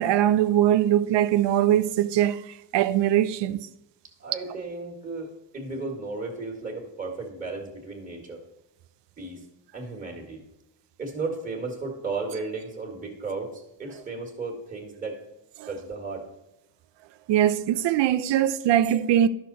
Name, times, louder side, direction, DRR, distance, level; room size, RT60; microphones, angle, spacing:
voice 1, 0.0-3.6 15.6-15.7 17.3-19.3, right 11 dB, 80° right, 0.6 m, -22 dB
voice 2, 4.2-8.4 9.2-9.4 9.7-10.4 11.0-15.2 15.7-16.3, right 3 dB, 20° right, 1.9 m, -34 dB
12.0 x 6.2 x 4.1 m
cardioid pair, 140°, 41 cm